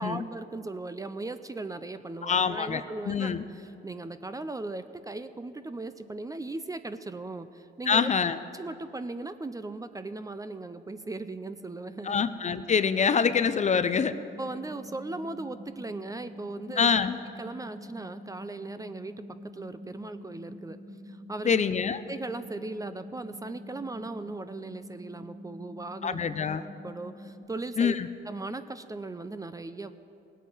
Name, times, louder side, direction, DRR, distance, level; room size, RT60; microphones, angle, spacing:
voice 1, 0.0-8.1 8.5-12.2 14.4-16.9 17.4-19.2 19.5-20.8 21.1-21.6 22.1-26.3 26.8-28.0 28.3-29.9, right 2 dB, 15° right, 11 dB, 0.5 m, -38 dB
voice 2, 2.2-3.4 7.9-8.4 12.0-14.1 16.8-17.2 21.5-22.0 26.0-26.6 27.8-28.1, left 6 dB, 35° left, 12 dB, 0.5 m, -25 dB
sound 1, 11.9-27.4, left 1 dB, 35° right, 1.5 m, -46 dB
18.0 x 8.3 x 5.6 m, 2.8 s
cardioid pair, 90°, 20 cm